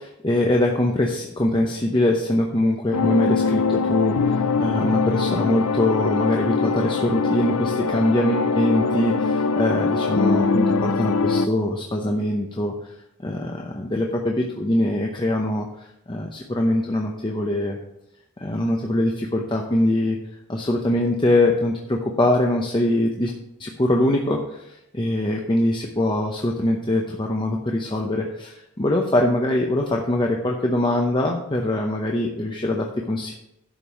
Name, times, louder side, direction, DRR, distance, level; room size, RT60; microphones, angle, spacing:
voice 1, 0.0-12.9 13.2-17.8 18.4-20.2 20.5-23.3 23.6-33.3, left 1 dB, 20° left, 1 dB, 0.8 m, -23 dB
sound 1, 2.9-11.5, left 4 dB, 90° left, 0.6 m, -22 dB
11.5 x 5.3 x 6.2 m, 0.84 s
head